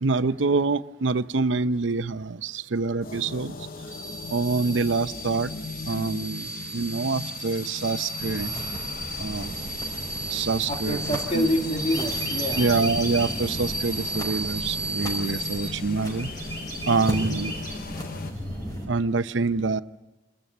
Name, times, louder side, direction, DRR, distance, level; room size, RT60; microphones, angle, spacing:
voice 1, 0.0-3.5 4.3-5.5 5.9-8.5 9.2-9.5 10.3-11.5 12.6-16.3 16.9-17.5 18.9-19.8, right 4 dB, 80° right, 13 dB, 0.7 m, -26 dB
sound 1, 3.0-18.3, left 4 dB, 50° left, 0.9 m, -39 dB
sound 2, 3.9-15.7, right 2 dB, 40° right, 2.5 m, -34 dB
sound 3, 8.2-18.9, equal, 20° left, 5.5 m, -35 dB
voice 2, 10.7-12.7, left 1 dB, 35° left, 1 dB, 2.4 m, -27 dB
27.5 x 14.0 x 9.4 m, 1.1 s
head